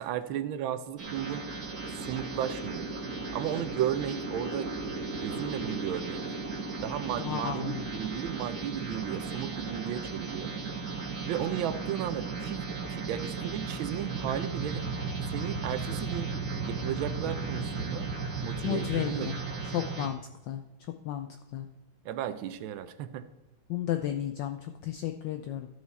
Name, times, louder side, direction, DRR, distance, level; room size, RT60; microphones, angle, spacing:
voice 1, 0.0-1.4 2.0-2.9 3.3-4.7 5.1-6.2 6.8-10.5 11.2-14.9 15.3-16.3 16.6-18.1 18.4-19.7 22.0-23.2, right 10 dB, 75° right, 11 dB, 1.3 m, -34 dB
sound 1, 1.0-20.1, right 4 dB, 40° right, 1.7 m, -35 dB
voice 2, 7.2-7.9 18.6-19.4 19.7-20.2 20.5-20.6 21.0-21.3 21.5-21.7 23.7-25.7, left 12 dB, 75° left, 7 dB, 1.1 m, -32 dB
12.5 x 6.4 x 4.1 m, 1.0 s
omnidirectional pair, 2.4 m